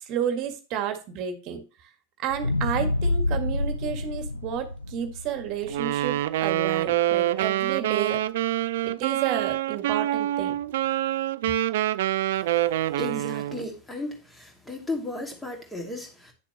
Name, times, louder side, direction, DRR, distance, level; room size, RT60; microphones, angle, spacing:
voice 1, 0.1-1.6 2.2-8.2 8.8-10.6, right 9 dB, 40° right, 1.7 m, -31 dB
sound 1, 2.3-6.6 7.0-7.1, left 2 dB, 80° left, 1.1 m, -28 dB
Wind instrument woodwind instrument, 5.7-13.7, right 13 dB, 55° right, 0.4 m, -26 dB
voice 2, 13.0-16.3, left 1 dB, 10° left, 2.5 m, -34 dB
10.5 x 6.8 x 3.1 m
figure-of-eight pair, 90°, 0 cm